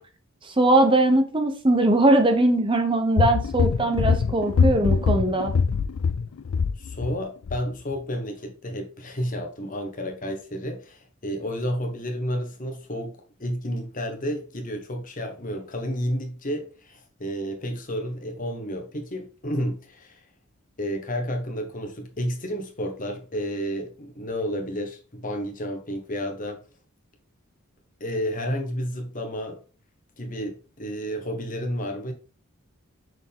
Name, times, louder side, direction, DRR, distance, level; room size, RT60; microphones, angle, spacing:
voice 1, 0.4-5.5, right 2 dB, 25° right, 0.8 m, -20 dB
sound 1, 3.2-7.2 7.5-7.6, left 5 dB, 70° left, 0.4 m, -23 dB
voice 2, 6.8-20.2 20.8-26.6 28.0-29.6 30.2-32.1, equal, 40° left, 1.3 m, -31 dB
6.1 x 4.6 x 3.6 m
head